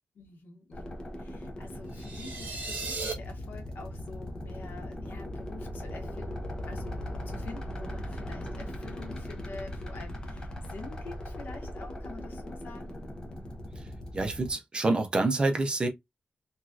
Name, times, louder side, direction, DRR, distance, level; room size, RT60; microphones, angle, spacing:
voice 1, 0.1-13.0, left 3 dB, 80° left, 1.1 m, -47 dB
sound 1, 0.7-14.5, left 1 dB, 25° left, 0.7 m, -39 dB
sound 2, 1.9-3.1, right 4 dB, 50° right, 1.1 m, -36 dB
voice 2, 14.1-15.9, right 2 dB, 30° right, 0.6 m, -27 dB
3.0 x 2.8 x 2.3 m
wide cardioid pair, 160°, 3 cm